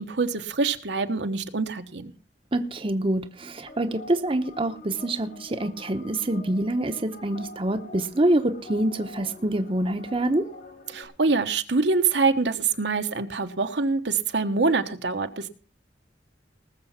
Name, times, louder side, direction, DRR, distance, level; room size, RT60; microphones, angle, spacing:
voice 1, 0.0-2.1 10.9-15.5, right 4 dB, 75° right, 1.2 m, -25 dB
voice 2, 2.5-10.5, right 1 dB, 30° right, 0.9 m, -26 dB
sound 1, 3.7-11.0, left 2 dB, 60° left, 3.3 m, -45 dB
19.5 x 7.0 x 5.7 m
head